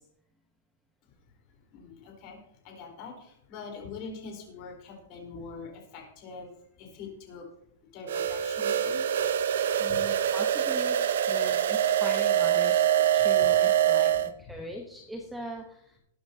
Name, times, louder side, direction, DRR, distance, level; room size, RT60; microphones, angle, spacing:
voice 1, 1.7-2.4 2.6-6.5 6.8-7.4 7.9-9.0 13.4-13.5, left 4 dB, 30° left, 1 dB, 3.9 m, -43 dB
sound 1, 8.1-14.3, right 10 dB, 65° right, 0.7 m, -24 dB
voice 2, 9.8-11.0 11.3-16.0, equal, ahead, 2 dB, 0.9 m, -40 dB
20.0 x 9.6 x 2.8 m, 0.70 s
supercardioid pair, 175°, 0 cm